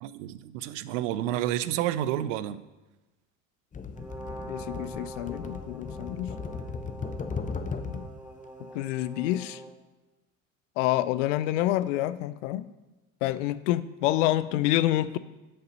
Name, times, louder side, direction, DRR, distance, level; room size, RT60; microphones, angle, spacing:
voice 1, 0.0-2.6, right 12 dB, 65° right, 15 dB, 0.6 m, -30 dB
sound 1, 3.7-8.1 9.2-9.4, left 5 dB, 20° left, 0.7 m, -37 dB
Brass instrument, 3.9-9.8, right 3 dB, 5° right, 2.1 m, -44 dB
voice 2, 4.5-6.4 7.9-8.1 8.7-9.6 10.8-12.7 13.2-15.2, left 14 dB, 65° left, 16 dB, 0.5 m, -27 dB
7.8 x 6.5 x 5.4 m, 1.1 s
hypercardioid pair, 70°, 41 cm